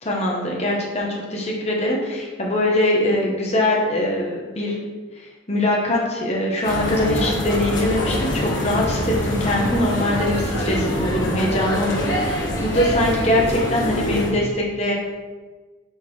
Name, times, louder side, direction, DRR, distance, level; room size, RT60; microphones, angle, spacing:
voice 1, 0.0-4.8 5.2-14.9, left 1 dB, 35° left, -2 dB, 1.3 m, -22 dB
sound 1, 6.6-14.3, equal, 90° left, 1.4 m, -24 dB
6.6 x 4.0 x 4.9 m, 1.3 s
head